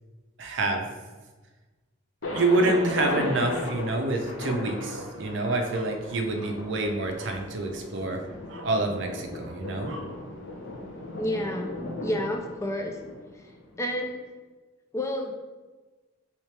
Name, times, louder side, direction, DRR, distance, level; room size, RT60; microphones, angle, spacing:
voice 1, 0.4-0.9 2.2-8.2 8.5-10.1, right 2 dB, 70° right, 4 dB, 0.5 m, -27 dB
Thunder, 2.2-14.0, left 1 dB, 80° left, 0.6 m, -36 dB
voice 2, 11.2-11.7 12.0-13.0 13.4-13.5 13.8-14.2 14.9-15.3, left 1 dB, 15° left, 3 dB, 0.3 m, -30 dB
3.1 x 3.1 x 3.2 m, 1.3 s
head